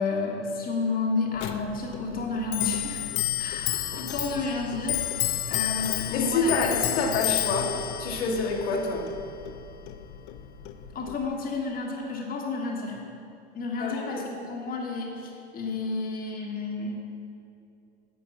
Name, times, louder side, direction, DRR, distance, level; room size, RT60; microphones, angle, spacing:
voice 1, 0.0-3.0 3.4-6.7 10.9-13.0 13.5-16.9, left 3 dB, 25° left, -1 dB, 1.4 m, -31 dB
Clock, 1.4-11.3, left 13 dB, 45° left, 0.6 m, -31 dB
voice 2, 6.1-9.1 13.8-14.2, left 3 dB, 65° left, -1 dB, 1.6 m, -27 dB
9.7 x 4.6 x 7.0 m, 2.6 s
hypercardioid pair, 95°, 34 cm